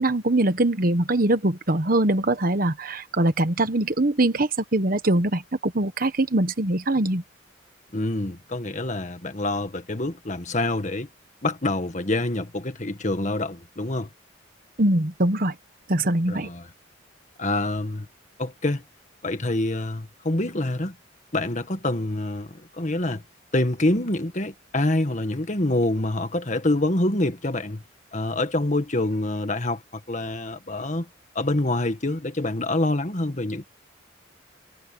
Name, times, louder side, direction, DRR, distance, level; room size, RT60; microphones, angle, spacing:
voice 1, 0.0-7.2 14.8-15.5 15.9-16.5, right 1 dB, 50° right, 1.2 m, -22 dB
voice 2, 7.9-11.1 11.4-14.1 16.3-16.7 17.4-18.1 18.4-18.8 19.2-20.9 21.3-23.2 23.5-27.8 28.1-31.1 31.3-33.7, left 2 dB, 40° left, 1.7 m, -26 dB
head